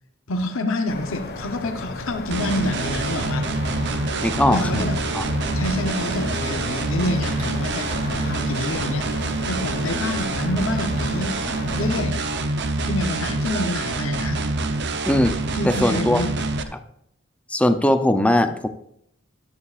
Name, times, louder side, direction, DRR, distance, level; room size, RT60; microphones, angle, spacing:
voice 1, 0.3-3.5 4.5-5.1 5.5-11.4 11.8-12.3 12.8-14.4 15.5-16.4, left 1 dB, 70° left, 5 dB, 0.9 m, -28 dB
sound 1, 0.9-12.0, left 2 dB, 50° left, 1.3 m, -34 dB
sound 2, 2.3-16.6, right 2 dB, 55° right, 0.8 m, -26 dB
voice 2, 4.2-4.8 5.1-5.2 15.1-15.4 15.6-16.2 17.5-18.7, left 1 dB, 5° left, 9 dB, 0.6 m, -19 dB
sound 3, 5.5-9.8 10.5-13.1, right 1 dB, 35° right, 3.8 m, -45 dB
13.5 x 11.5 x 2.5 m, 0.73 s
head